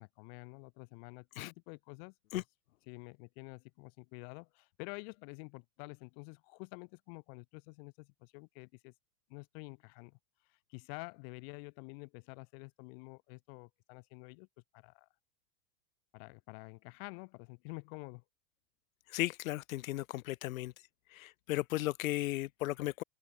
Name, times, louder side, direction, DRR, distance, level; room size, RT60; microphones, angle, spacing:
voice 1, 0.0-2.1 2.9-8.9 9.3-10.2 10.5-14.5 14.7-15.1 16.1-18.2, left 35 dB, 40° left, 4.4 m, -49 dB
voice 2, 19.1-20.7 21.1-23.0, left 16 dB, 70° left, 1.4 m, -35 dB
open air
supercardioid pair, 170°, 42 cm